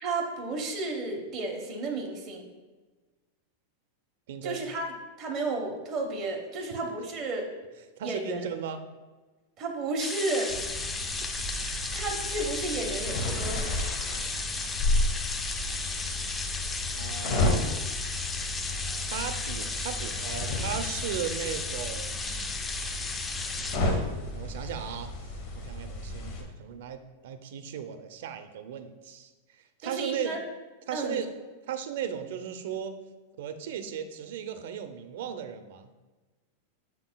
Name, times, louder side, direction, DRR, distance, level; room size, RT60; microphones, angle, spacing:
voice 1, 0.0-2.5 4.4-4.9 5.2-7.5 8.0-8.5 9.6-10.5 11.9-13.8 16.8-17.0 29.8-30.4 30.9-31.2, right 2 dB, 25° right, 1 dB, 1.1 m, -32 dB
voice 2, 4.3-4.6 8.0-8.8 17.0-17.7 19.1-22.6 23.3-25.1 25.5-29.3 29.6-30.4 30.9-31.3 31.7-33.0 33.4-36.0, right 8 dB, 65° right, 9 dB, 0.5 m, -37 dB
sound 1, 10.0-23.8, left 3 dB, 10° left, 0.4 m, -34 dB
sound 2, 10.5-26.4, left 2 dB, 40° left, 1.1 m, -33 dB
7.8 x 5.9 x 2.3 m, 1.3 s
supercardioid pair, 165°, 0 cm